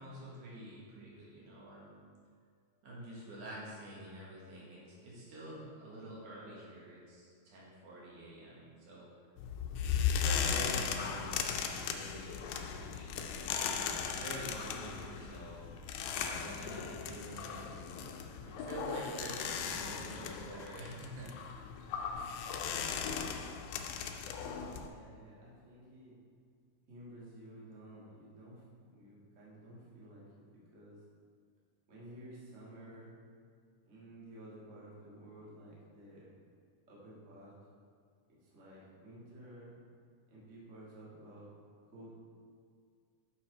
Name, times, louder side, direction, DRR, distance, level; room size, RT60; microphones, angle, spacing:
voice 1, 0.0-1.9 2.8-9.1 9.8-13.3 14.0-15.7 16.1-17.6 18.5-21.6, right 1 dB, 65° right, -5 dB, 2.9 m, -47 dB
sound 1, 9.4-24.9, left 7 dB, 80° left, 1.9 m, -37 dB
voice 2, 24.9-26.1 26.9-28.6 28.9-31.0 31.9-33.1 33.9-36.3 36.9-37.5 38.3-39.7 40.3-41.5 41.9-42.1, right 1 dB, 35° right, -7 dB, 1.2 m, -53 dB
6.8 x 5.9 x 4.6 m, 2.2 s
omnidirectional pair, 3.9 m